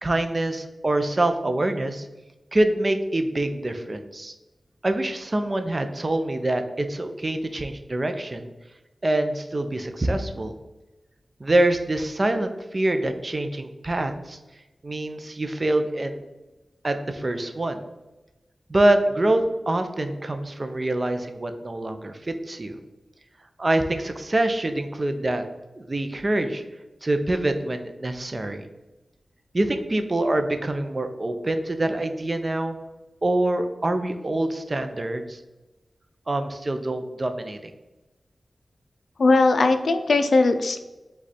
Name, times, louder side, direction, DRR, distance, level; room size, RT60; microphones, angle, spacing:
voice 1, 0.0-2.1 2.5-4.3 4.8-8.5 9.0-10.5 11.4-14.4 14.8-16.2 16.8-17.8 18.7-22.8 23.6-25.4 25.8-26.6 27.0-28.7 29.5-32.8 33.2-35.4 36.3-37.7, right 1 dB, 40° right, 7 dB, 0.5 m, -25 dB
voice 2, 39.2-40.8, left 3 dB, 80° left, 8 dB, 0.3 m, -19 dB
5.0 x 2.3 x 4.1 m, 1.1 s
wide cardioid pair, 70°, 0 cm